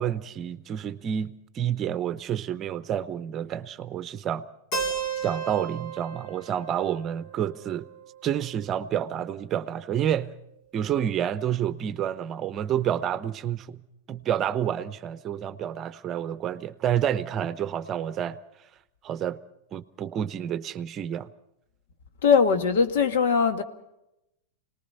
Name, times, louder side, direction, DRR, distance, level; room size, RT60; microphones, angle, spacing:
voice 1, 0.0-4.5 5.2-7.9 8.2-10.3 10.7-13.8 14.1-18.4 19.0-19.4 19.7-21.3, right 9 dB, 30° right, 0.8 m, -29 dB
Keyboard (musical), 4.7-8.6, right 5 dB, 55° left, 4.2 m, -35 dB
voice 2, 22.2-23.6, left 6 dB, 70° left, 1.6 m, -21 dB
26.0 x 19.5 x 5.6 m
hypercardioid pair, 120°, 0 cm